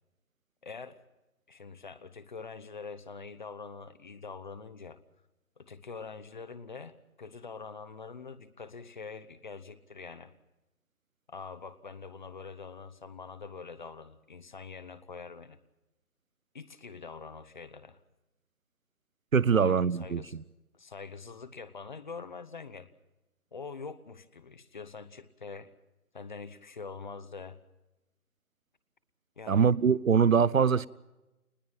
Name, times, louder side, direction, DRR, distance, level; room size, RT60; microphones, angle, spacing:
voice 1, 0.6-1.0 1.5-5.0 5.6-10.3 11.3-15.6 16.5-18.0 19.5-20.4 20.7-22.9 23.5-25.7 26.1-27.6 29.4-29.7, left 5 dB, 35° left, 15 dB, 0.9 m, -44 dB
voice 2, 19.3-20.4 29.5-30.9, right 6 dB, 65° right, 21 dB, 0.9 m, -23 dB
26.5 x 20.5 x 5.8 m, 1.0 s
figure-of-eight pair, 150°, 43 cm